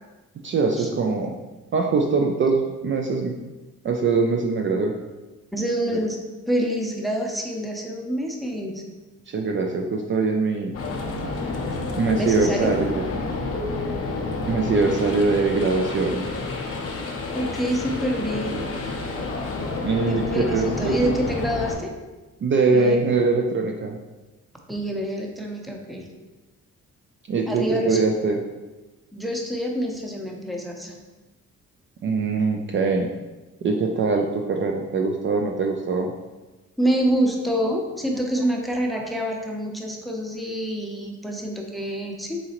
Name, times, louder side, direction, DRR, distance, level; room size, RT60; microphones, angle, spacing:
voice 1, 0.4-1.3 1.7-3.3 3.8-4.9 9.3-10.7 12.0-13.0 14.5-16.3 19.8-21.1 22.4-24.0 27.3-28.4 32.0-33.1 33.6-36.1, right 4 dB, 40° right, 2 dB, 0.4 m, -22 dB
voice 2, 5.5-6.2 6.5-8.8 12.1-12.7 17.3-18.6 20.1-21.9 22.7-23.0 24.7-26.1 27.5-28.0 29.1-31.0 36.8-42.4, equal, ahead, 1 dB, 0.7 m, -26 dB
sound 1, 10.7-21.7, left 3 dB, 50° left, 0.8 m, -29 dB
4.1 x 3.7 x 2.9 m, 1.1 s
cardioid pair, 90°, 30 cm